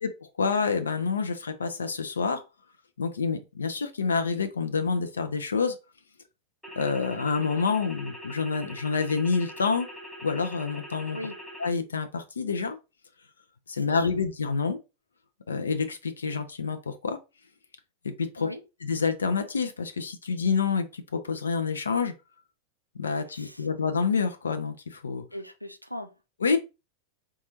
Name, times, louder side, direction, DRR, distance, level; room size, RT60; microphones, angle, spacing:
voice 1, 0.0-2.4 3.0-5.8 6.8-9.9 10.2-11.2 11.6-12.8 13.7-14.8 15.5-17.2 18.0-18.5 18.8-22.1 23.0-25.2 26.4-26.6, left 5 dB, 70° left, 0.4 m, -28 dB
sound 1, 6.6-11.7, equal, ahead, 0.6 m, -43 dB
voice 2, 13.7-14.1 18.4-18.6 23.3-23.7 25.3-26.1, left 1 dB, 90° right, 0.4 m, -39 dB
4.1 x 2.3 x 2.9 m
figure-of-eight pair, 90°, 0 cm